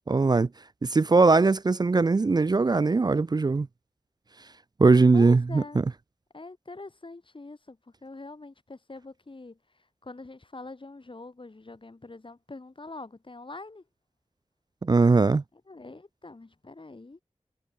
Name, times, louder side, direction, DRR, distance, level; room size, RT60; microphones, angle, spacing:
voice 1, 0.1-0.5 0.8-3.7 4.8-5.6 14.8-15.4, right 3 dB, 35° right, 0.4 m, -20 dB
voice 2, 5.1-5.8 6.3-13.8 15.7-17.2, left 3 dB, 45° left, 3.2 m, -44 dB
wide cardioid pair, 65°, 12 cm